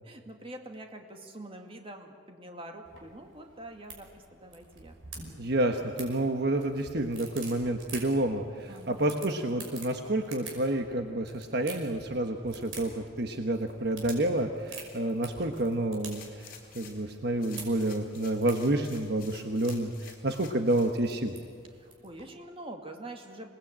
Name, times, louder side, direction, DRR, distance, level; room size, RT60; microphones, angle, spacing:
voice 1, 0.0-5.0 8.7-9.1 21.8-23.5, right 1 dB, 30° right, 3 dB, 2.2 m, -45 dB
sound 1, 2.8-22.3, right 4 dB, 85° right, 5.7 m, -49 dB
voice 2, 5.4-21.3, right 1 dB, 55° right, 5 dB, 1.3 m, -29 dB
sound 2, 16.1-17.1 17.4-20.9 21.4-21.5, left 7 dB, 50° left, 4.2 m, -51 dB
27.0 x 19.5 x 8.8 m, 2.2 s
head